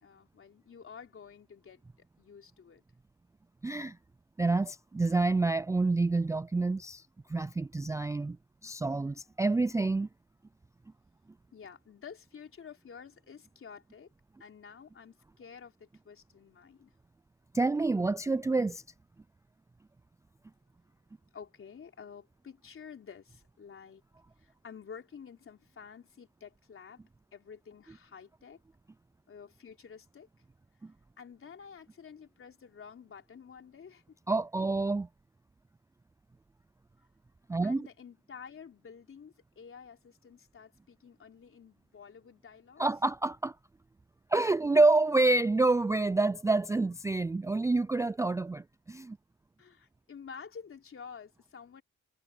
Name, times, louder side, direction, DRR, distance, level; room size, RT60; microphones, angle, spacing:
voice 1, 0.0-1.8 2.2-2.8 11.5-14.1 14.4-16.9 21.3-24.0 24.4-27.0 27.3-28.6 29.3-30.3 31.2-34.0 37.6-42.9 49.6-51.8, left 6 dB, 45° left, 3.8 m, -50 dB
voice 2, 3.6-4.0 4.4-7.0 7.3-8.4 8.6-10.1 17.5-18.8 34.3-35.1 37.5-37.9 42.8-43.5 44.3-49.2, right 3 dB, 10° right, 0.4 m, -27 dB
cardioid pair, 90°, 30 cm